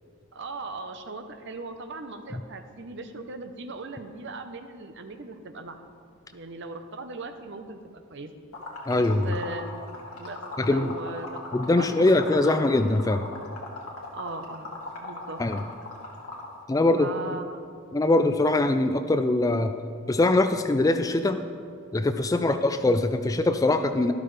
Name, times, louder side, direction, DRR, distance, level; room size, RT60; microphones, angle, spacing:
voice 1, 0.3-5.8 6.3-7.8 8.1-8.3 8.9-9.8 10.1-10.4 10.7-11.5 11.8-12.4 14.1-15.4 16.9-17.6 22.3-22.6, right 3 dB, 55° right, 7 dB, 0.8 m, -38 dB
Liquid, 8.5-16.5, left 2 dB, 85° left, 1.8 m, -39 dB
voice 2, 8.9-9.3 10.6-10.9 11.5-13.2 15.4-15.6 16.7-17.1 17.9-19.7 20.1-21.4 21.9-24.1, left 2 dB, 15° left, 8 dB, 0.3 m, -22 dB
12.5 x 12.0 x 3.3 m, 2.3 s
head